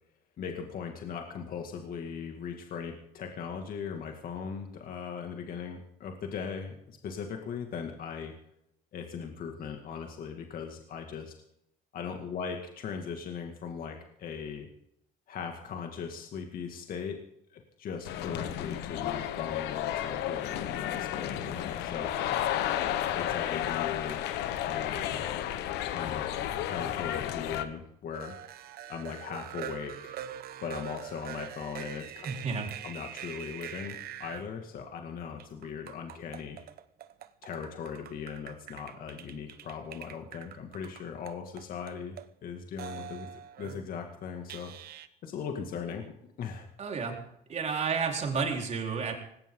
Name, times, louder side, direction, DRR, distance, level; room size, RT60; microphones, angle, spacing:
voice 1, 0.4-8.3 8.9-11.3 11.9-14.7 15.3-17.2 17.5-22.4 23.1-24.3 24.6-25.4 25.9-26.3 26.6-28.4 28.9-30.2 30.6-32.3 32.8-36.6 37.4-42.1 42.4-44.7 45.2-46.1 46.4-46.7, left 6 dB, 60° left, 3 dB, 2.3 m, -39 dB
sound 1, 18.0-27.6, left 11 dB, 85° left, 1.3 m, -32 dB
sound 2, 28.1-34.5 35.4-42.2 42.8-43.9 44.5-45.1, right 10 dB, 65° right, 1.1 m, -44 dB
voice 2, 32.2-32.7 46.8-47.2 47.5-49.1, right 5 dB, 40° right, 1 dB, 4.3 m, -31 dB
19.0 x 17.5 x 3.9 m, 0.76 s
cardioid pair, 110°, 17 cm